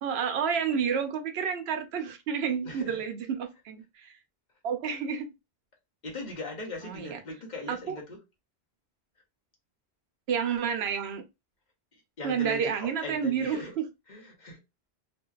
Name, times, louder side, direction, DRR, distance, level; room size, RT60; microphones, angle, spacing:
voice 1, 0.0-4.2 4.6-5.3 6.8-7.2 7.7-8.0 10.3-11.2 12.2-13.9, right 7 dB, 80° right, 0.8 m, -30 dB
voice 2, 2.6-3.0 6.0-8.2 11.9-13.7 14.1-14.6, left 2 dB, 50° left, 0.8 m, -40 dB
2.5 x 2.2 x 2.3 m
omnidirectional pair, 1.1 m